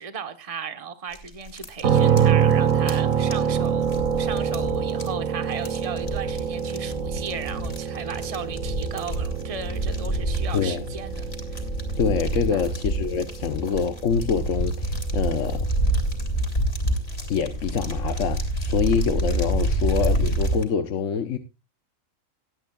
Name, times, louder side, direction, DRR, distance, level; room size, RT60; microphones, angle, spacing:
voice 1, 0.0-11.3 12.4-12.7, right 6 dB, 30° right, 1.2 m, -36 dB
sound 1, 1.1-20.6, right 1 dB, 50° left, 3.2 m, -28 dB
sound 2, 1.8-15.6, right 8 dB, 80° right, 1.5 m, -26 dB
voice 2, 10.5-10.9 12.0-15.7 17.3-21.4, left 6 dB, 70° left, 1.2 m, -25 dB
18.0 x 11.0 x 2.3 m
omnidirectional pair, 1.4 m